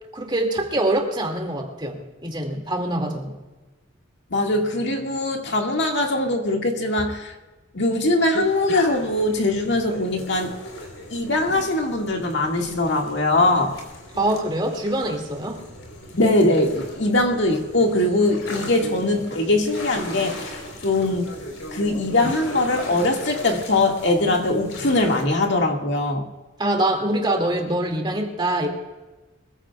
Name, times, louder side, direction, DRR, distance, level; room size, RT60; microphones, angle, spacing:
voice 1, 0.1-3.4 14.1-15.6 26.6-28.7, right 1 dB, 25° right, 2 dB, 2.4 m, -24 dB
voice 2, 4.3-7.3 7.7-10.6 11.1-13.8 16.2-20.5 20.8-21.4 21.7-26.2, left 2 dB, 60° left, 2 dB, 2.0 m, -21 dB
sound 1, 8.3-25.2, left 1 dB, 80° left, 4.1 m, -37 dB
23.5 x 15.5 x 2.4 m, 1.2 s
head